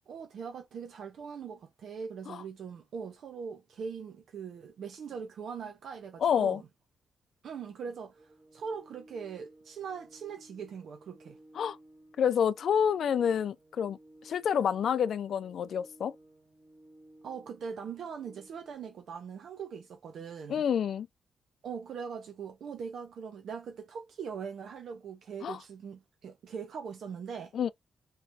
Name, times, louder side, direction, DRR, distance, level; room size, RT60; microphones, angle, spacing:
voice 1, 0.1-6.7 7.4-8.2 8.5-11.4 17.2-20.6 21.6-27.5, right 6 dB, 65° right, 0.6 m, -41 dB
voice 2, 6.2-6.6 11.5-11.8 12.2-14.0 14.2-16.1 20.5-21.1 25.4-25.6 27.5-27.7, left 8 dB, 60° left, 0.3 m, -28 dB
Organ, 8.1-19.1, right 1 dB, 25° right, 1.6 m, -58 dB
3.2 x 3.1 x 2.7 m
wide cardioid pair, 155°, 0 cm